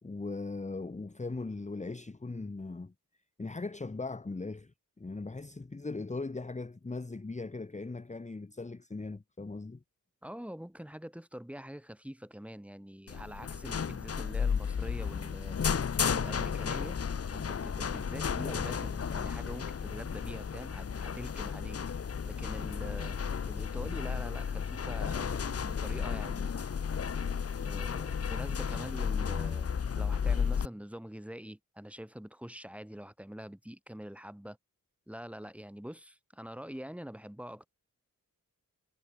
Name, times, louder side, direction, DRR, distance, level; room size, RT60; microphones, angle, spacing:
voice 1, 0.0-2.9 3.4-9.8, left 3 dB, 20° left, 1.2 m, -39 dB
voice 2, 10.2-15.6 16.0-17.0 17.3-21.8 22.2-23.2 23.4-26.5 27.6-34.6 35.1-37.7, equal, 5° right, 3.3 m, -45 dB
sound 1, 13.1-30.7, left 6 dB, 45° left, 0.9 m, -33 dB
wide cardioid pair, 95°, 34 cm